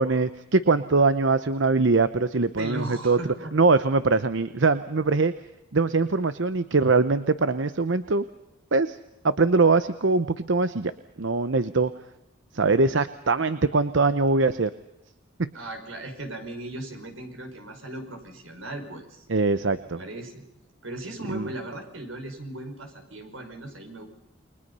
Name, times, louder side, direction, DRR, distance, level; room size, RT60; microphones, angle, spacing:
voice 1, 0.0-3.2 3.5-5.3 5.7-8.2 8.7-9.0 9.2-10.9 11.2-11.9 12.5-14.7 15.4-15.5 19.3-20.0 21.3-21.5, right 3 dB, 70° right, 12 dB, 0.8 m, -22 dB
voice 2, 2.6-3.5 15.5-19.3 20.0-20.4 20.8-24.1, right 1 dB, 90° right, 5 dB, 5.5 m, -37 dB
29.5 x 23.5 x 5.6 m, 0.90 s
head